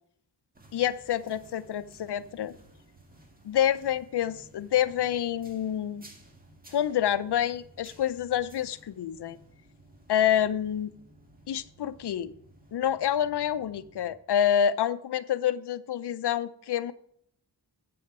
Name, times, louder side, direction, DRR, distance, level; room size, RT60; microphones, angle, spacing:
sound 1, 0.5-14.1, right 1 dB, 20° right, 1.8 m, -55 dB
voice 1, 0.7-2.5 3.4-6.1 6.7-9.4 10.1-10.9 11.5-12.3 12.7-16.9, left 10 dB, 75° left, 15 dB, 0.6 m, -27 dB
8.5 x 7.0 x 4.8 m, 0.68 s
wide cardioid pair, 90°, 41 cm